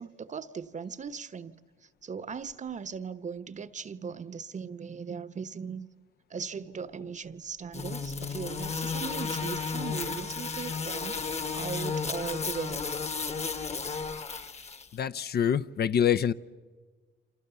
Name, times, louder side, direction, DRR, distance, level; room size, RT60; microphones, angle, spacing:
voice 1, 0.0-5.9 6.3-12.8, right 6 dB, 35° right, 1.0 m, -38 dB
sound 1, 7.7-14.9, left 5 dB, 35° left, 1.3 m, -33 dB
voice 2, 14.9-16.3, left 8 dB, 55° left, 0.7 m, -25 dB
28.5 x 26.0 x 6.9 m
cardioid pair, 90°, 20 cm